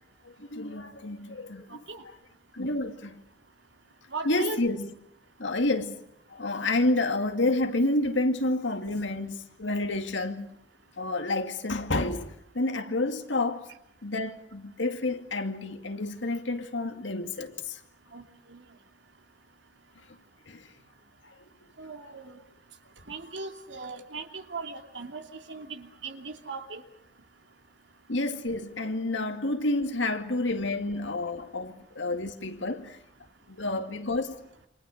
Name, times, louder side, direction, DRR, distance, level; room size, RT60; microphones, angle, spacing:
voice 1, 0.2-1.8 2.5-3.2 4.2-4.9 5.4-10.6 11.0-13.7 14.0-17.8 20.5-20.7 21.2-21.3 22.0-22.1 28.1-33.0 33.5-34.4, left 2 dB, 85° left, 2.3 m, -29 dB
voice 2, 1.7-2.0 4.1-4.6 18.1-18.2 18.5-18.6 21.8-22.4 23.1-25.2 25.5-26.8, right 3 dB, 75° right, 2.8 m, -38 dB
28.5 x 26.5 x 6.6 m
head